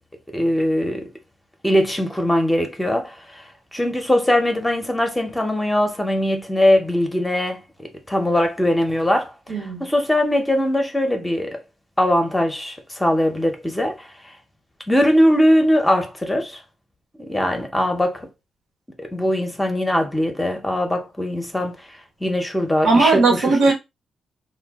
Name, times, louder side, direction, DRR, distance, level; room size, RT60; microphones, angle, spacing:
voice 1, 0.3-1.1 1.6-3.4 3.7-9.3 9.8-11.6 12.0-14.1 14.9-16.6 17.2-18.3 19.0-21.8 22.2-23.6, left 1 dB, 10° left, 0.6 m, -21 dB
voice 2, 9.5-9.9 22.8-23.7, right 3 dB, 85° right, 1.1 m, -17 dB
2.5 x 2.2 x 3.5 m
cardioid pair, 125°, 0 cm